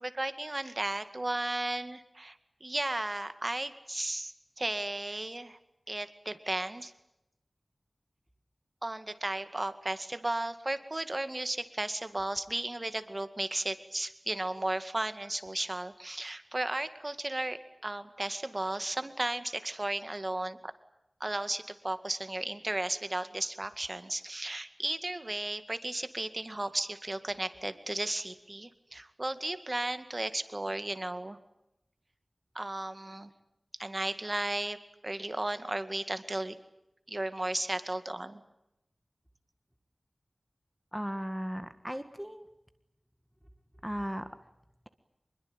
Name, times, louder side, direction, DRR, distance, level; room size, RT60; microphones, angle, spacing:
voice 1, 0.0-5.6 5.9-6.9 8.8-20.7 21.2-31.4 32.5-33.3 33.8-34.8 35.0-36.6 37.1-38.4, right 1 dB, 35° right, 10 dB, 2.0 m, -34 dB
voice 2, 40.9-42.5 43.8-44.3, equal, 5° right, 9 dB, 1.7 m, -36 dB
25.5 x 22.0 x 9.0 m, 0.86 s
wide cardioid pair, 70°, 0 cm